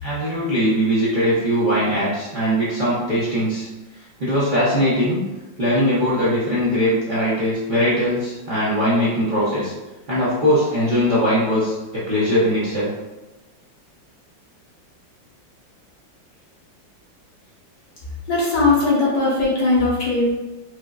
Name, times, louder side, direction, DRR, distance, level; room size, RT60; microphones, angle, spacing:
voice 1, 0.0-3.7 4.2-5.2 5.6-9.7 10.1-12.9, equal, 75° right, -9 dB, 0.4 m, -20 dB
voice 2, 18.3-20.3, left 3 dB, 60° left, -7 dB, 1.6 m, -19 dB
4.8 x 2.0 x 2.3 m, 1.1 s
omnidirectional pair, 2.1 m